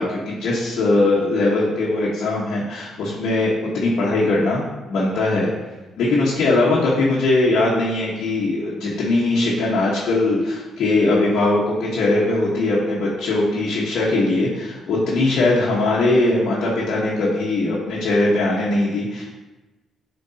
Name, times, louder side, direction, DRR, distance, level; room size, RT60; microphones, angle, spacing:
voice 1, 0.0-4.6 4.9-5.5 6.0-19.2, left 2 dB, 75° left, -6 dB, 1.4 m, -20 dB
7.9 x 4.4 x 2.9 m, 1.1 s
cardioid pair, 90°, 0 cm